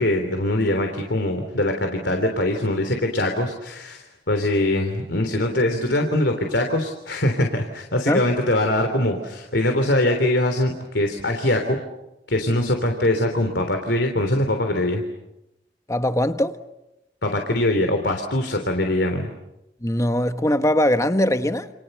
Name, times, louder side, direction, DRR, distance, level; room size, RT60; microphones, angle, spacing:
voice 1, 0.0-11.8 12.3-15.0 17.2-19.3, left 1 dB, 75° left, 3.4 m, -22 dB
voice 2, 15.9-16.6 19.8-21.7, left 1 dB, 20° left, 1.4 m, -21 dB
29.5 x 29.5 x 6.7 m
head